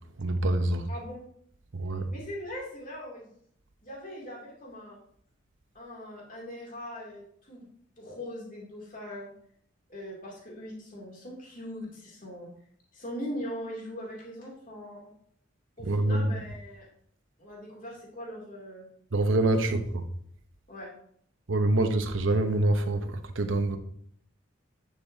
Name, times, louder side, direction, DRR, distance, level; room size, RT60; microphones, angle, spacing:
voice 1, 0.2-0.9 1.7-2.1 15.8-16.3 19.1-19.8 21.5-23.8, right 2 dB, 80° right, 0.9 m, -25 dB
voice 2, 0.9-1.2 2.1-3.4 3.8-5.0 5.7-7.6 8.0-9.3 9.9-12.5 12.9-15.1 15.8-16.9 17.4-18.8 19.5-19.6 20.7-20.9, equal, 45° left, 2.6 m, -40 dB
10.0 x 6.6 x 2.7 m
head